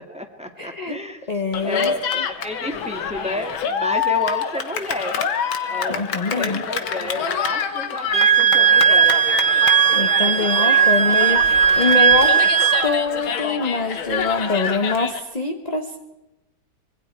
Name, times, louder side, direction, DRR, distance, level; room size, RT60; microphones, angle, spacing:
voice 1, 0.0-1.2 1.6-5.2 5.7-9.2, left 1 dB, 5° right, 4 dB, 2.0 m, -30 dB
voice 2, 0.6-1.0 1.3-1.9 5.9-6.6 9.9-12.4 12.8-16.0, left 3 dB, 25° left, 5 dB, 1.0 m, -24 dB
Cheering, 1.5-15.2, left 7 dB, 75° left, 2.2 m, -27 dB
Wind instrument woodwind instrument, 8.1-12.9, right 8 dB, 45° right, 1.1 m, -16 dB
25.5 x 22.5 x 4.6 m, 0.98 s
omnidirectional pair, 2.2 m